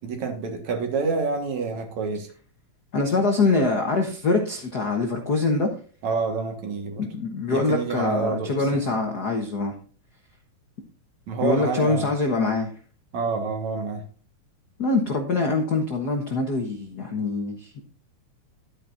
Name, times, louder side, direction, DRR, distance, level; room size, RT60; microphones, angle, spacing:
voice 1, 0.0-2.3 6.0-7.0 7.5-8.8 11.3-12.1 13.1-14.0, right 4 dB, 65° right, 4 dB, 2.9 m, -28 dB
voice 2, 2.9-5.7 7.0-9.7 11.4-12.7 14.8-17.8, left 3 dB, 55° left, 3 dB, 1.0 m, -24 dB
12.0 x 9.2 x 2.6 m, 0.41 s
omnidirectional pair, 3.7 m